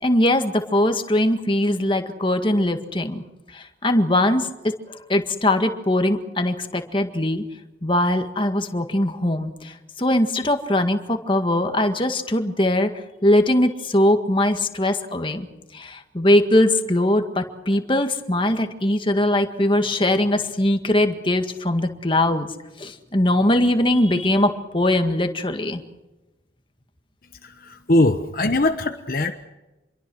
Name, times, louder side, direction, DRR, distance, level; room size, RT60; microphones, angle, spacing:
voice 1, 0.0-3.2 3.5-7.4 7.8-12.9 13.2-15.5 15.7-22.5 22.8-25.8, left 1 dB, 25° left, 6 dB, 1.8 m, -21 dB
voice 2, 27.4-29.3, left 2 dB, 50° left, 7 dB, 1.1 m, -21 dB
28.0 x 22.5 x 6.3 m, 1.1 s
head